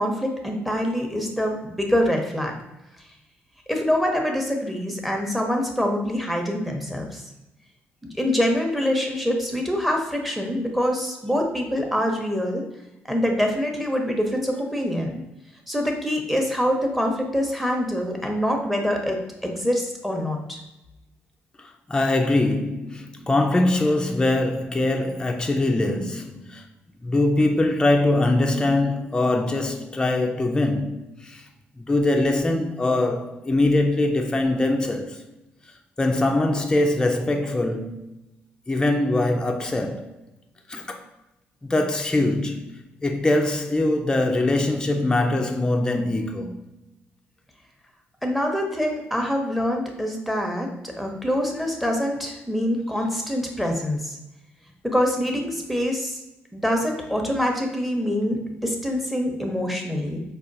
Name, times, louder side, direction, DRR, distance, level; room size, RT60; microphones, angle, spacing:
voice 1, 0.0-2.5 3.7-7.2 8.2-12.6 13.1-15.1 15.7-20.6 48.2-54.2 54.8-56.2 56.5-60.2, equal, ahead, 0.7 m, -25 dB
voice 2, 21.6-26.6 27.0-31.4 31.8-35.2 36.0-38.2 38.7-40.1 40.7-41.1 41.6-42.7 43.0-46.6, left 2 dB, 15° left, 0.4 m, -22 dB
4.3 x 2.3 x 2.6 m
supercardioid pair, 70°, 5 cm